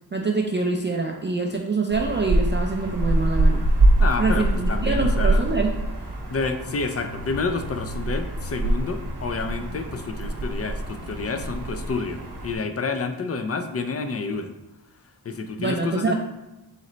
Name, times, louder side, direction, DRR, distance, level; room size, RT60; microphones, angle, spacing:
voice 1, 0.1-3.7 4.2-5.7 15.6-16.1, right 3 dB, 30° right, 2 dB, 0.4 m, -25 dB
sound 1, 1.9-12.5, right 1 dB, 80° right, 0.9 m, -24 dB
voice 2, 4.0-5.5 6.3-14.5 15.2-16.1, left 4 dB, 40° left, 7 dB, 0.5 m, -29 dB
4.1 x 3.1 x 3.9 m, 1.0 s
wide cardioid pair, 80°, 39 cm